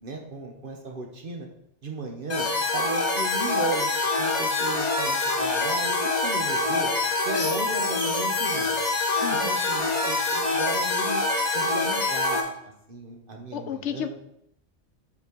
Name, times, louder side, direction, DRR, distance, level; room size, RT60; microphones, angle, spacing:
voice 1, 0.0-1.5 1.8-3.9 4.2-6.9 7.2-8.8 9.3-11.2 11.5-12.4 12.9-14.1, right 3 dB, 50° right, 2 dB, 1.3 m, -35 dB
sound 1, 2.3-12.4, left 3 dB, 40° left, 1.2 m, -25 dB
voice 2, 9.2-9.6 13.5-14.1, left 9 dB, 85° left, 9 dB, 0.9 m, -32 dB
5.8 x 4.3 x 6.1 m, 0.76 s
omnidirectional pair, 1.2 m